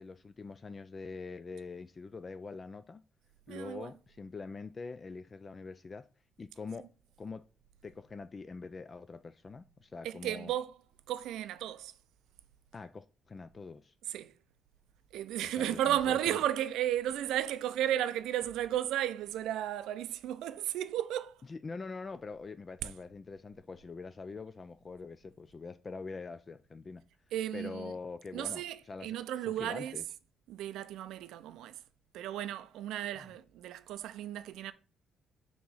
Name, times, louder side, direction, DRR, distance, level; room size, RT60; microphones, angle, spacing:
voice 1, 0.0-3.0 3.5-6.1 6.4-6.9 7.2-7.4 7.8-10.5 12.7-13.9 15.4-16.4 21.5-27.0 27.5-29.2 29.4-30.0 33.2-33.3, left 4 dB, 35° left, 0.3 m, -44 dB
voice 2, 3.5-3.9 10.0-10.7 11.1-11.9 14.1-14.3 15.1-21.4 22.8-22.9 27.3-27.9 28.3-30.0 30.5-31.8 32.1-34.7, right 12 dB, 85° right, 0.4 m, -34 dB
6.1 x 3.0 x 5.5 m
cardioid pair, 90°, 0 cm